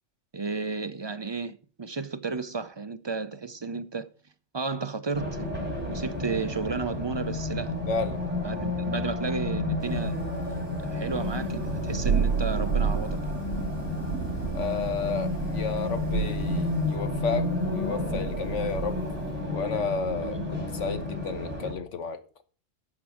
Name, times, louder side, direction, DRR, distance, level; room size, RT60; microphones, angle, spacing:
voice 1, 0.3-4.1 4.5-5.4 5.9-7.7 8.4-10.2 10.8-13.2 20.2-20.6, right 4 dB, 35° right, 0.4 m, -33 dB
Race car auto racing, 5.1-21.7, left 2 dB, 10° right, 3.7 m, -31 dB
voice 2, 7.9-8.2 14.5-19.0 19.5-22.2, left 4 dB, 80° left, 1.5 m, -32 dB
Fire, 9.8-16.9, left 1 dB, 30° left, 6.1 m, -48 dB
Thunder, 11.0-19.5, right 7 dB, 75° right, 1.1 m, -32 dB
12.5 x 7.4 x 4.9 m
omnidirectional pair, 1.2 m